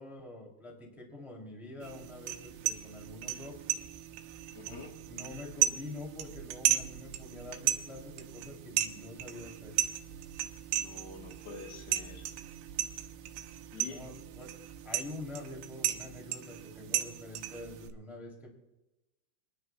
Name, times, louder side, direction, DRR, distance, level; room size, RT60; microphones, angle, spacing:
voice 1, 0.0-3.6 4.6-4.8 5.1-9.7 13.8-14.5 14.8-18.5, left 2 dB, ahead, -1 dB, 2.0 m, -46 dB
sound 1, 1.8-17.9, right 13 dB, 85° right, 3.0 m, -35 dB
voice 2, 4.5-4.9 10.8-12.3 13.7-14.0, left 4 dB, 70° left, 1 dB, 3.2 m, -46 dB
28.0 x 10.5 x 2.4 m, 1.0 s
omnidirectional pair, 5.1 m